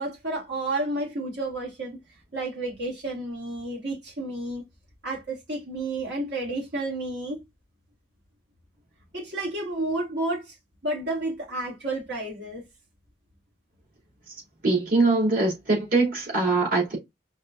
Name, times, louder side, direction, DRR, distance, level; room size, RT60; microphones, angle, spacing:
voice 1, 0.0-2.0 2.3-4.6 5.0-7.4 9.1-10.5 10.8-12.6, right 2 dB, 70° right, 2.8 m, -31 dB
voice 2, 14.6-17.0, right 3 dB, 50° right, 3.0 m, -22 dB
5.3 x 3.3 x 2.6 m
head